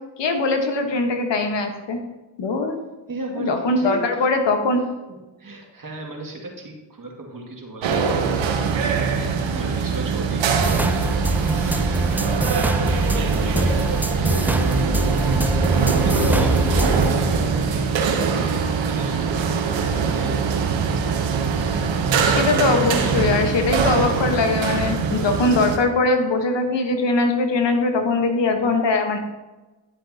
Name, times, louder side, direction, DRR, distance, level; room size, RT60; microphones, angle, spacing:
voice 1, 0.2-2.0 2.4-2.8 3.4-4.8 22.2-29.2, left 3 dB, 70° left, 5 dB, 1.4 m, -21 dB
voice 2, 3.1-4.3 5.1-15.3 15.8-17.9 18.4-20.5 28.6-28.7, right 2 dB, 45° right, 0 dB, 2.2 m, -35 dB
sound 1, 7.8-25.8, right 5 dB, 90° right, 1.0 m, -22 dB
sound 2, 10.6-17.1, right 1 dB, 5° right, 0.4 m, -24 dB
11.0 x 7.4 x 2.8 m, 1.1 s
supercardioid pair, 45°, 44 cm